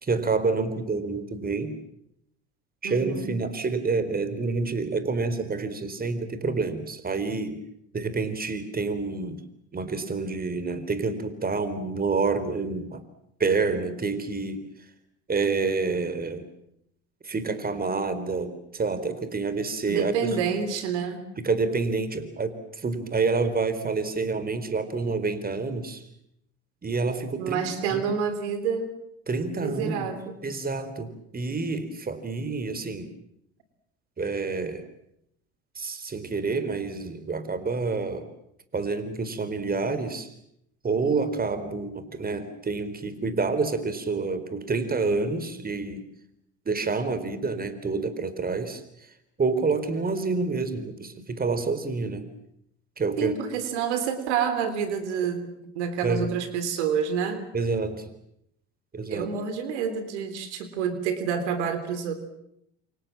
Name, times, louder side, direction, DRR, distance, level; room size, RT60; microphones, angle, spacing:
voice 1, 0.0-1.8 2.8-7.6 7.9-9.4 9.7-13.0 13.4-14.7 15.3-16.4 17.2-20.4 21.4-26.0 26.8-27.6 27.9-28.0 29.3-30.1 30.4-33.1 34.2-34.8 35.8-38.3 38.7-40.3 40.8-46.0 46.7-48.8 49.4-52.3 53.0-53.3 56.0-56.3 57.5-58.1 58.9-59.3, right 4 dB, 25° right, 12 dB, 4.2 m, -28 dB
voice 2, 2.8-3.3 19.9-21.2 27.4-28.9 29.6-30.4 53.2-55.4 55.8-57.4 59.1-62.1, right 7 dB, 85° right, 11 dB, 3.6 m, -28 dB
28.0 x 26.0 x 7.5 m, 0.78 s
hypercardioid pair, 75°, 34 cm